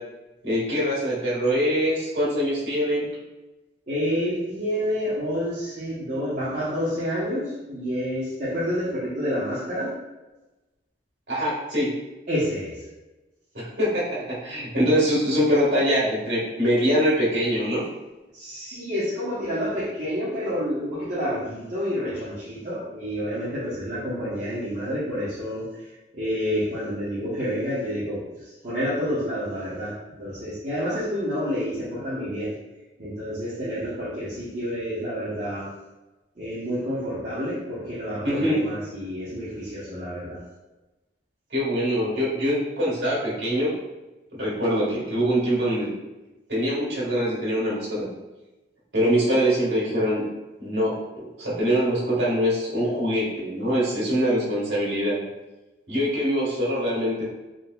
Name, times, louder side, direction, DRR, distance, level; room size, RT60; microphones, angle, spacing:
voice 1, 0.4-3.1 11.3-11.9 13.5-17.8 38.2-38.6 41.5-43.7 44.3-45.9 46.5-48.1 48.9-50.2 50.6-55.2 55.9-57.2, equal, 60° right, -7 dB, 1.4 m, -23 dB
voice 2, 3.9-9.9 12.3-12.8 18.3-32.5 33.0-35.7 36.4-40.4, equal, 40° right, -12 dB, 0.9 m, -29 dB
3.7 x 2.8 x 2.2 m, 1.1 s
head